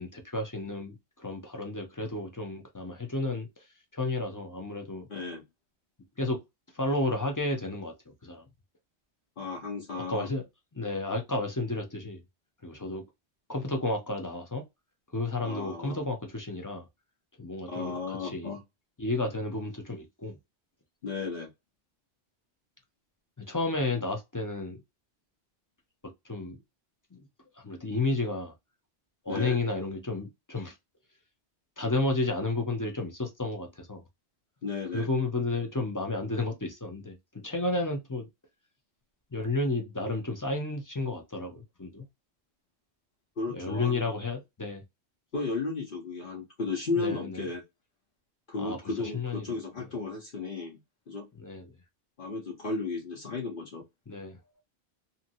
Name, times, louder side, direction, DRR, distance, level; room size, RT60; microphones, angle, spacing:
voice 1, 0.0-3.5 3.9-5.1 6.2-6.4 6.7-7.9 8.2-8.4 9.9-10.4 10.7-12.2 12.6-13.0 13.5-14.6 15.1-16.8 17.4-18.5 19.0-20.4 23.4-24.8 26.3-26.6 27.1-27.2 27.6-28.5 29.3-30.7 31.8-34.0 34.9-37.2 37.4-38.3 39.3-42.1 43.5-44.8 47.0-47.5 48.5-49.5 51.4-51.7 54.1-54.4, left 2 dB, 25° left, 0.5 m, -32 dB
voice 2, 5.1-5.4 9.4-10.3 15.4-16.0 17.7-18.6 21.0-21.5 29.3-29.6 34.6-35.1 43.4-44.1 45.3-47.6 48.5-50.8 51.1-51.3 52.2-53.8, left 4 dB, 55° left, 1.0 m, -34 dB
2.8 x 2.7 x 2.6 m
omnidirectional pair, 1.1 m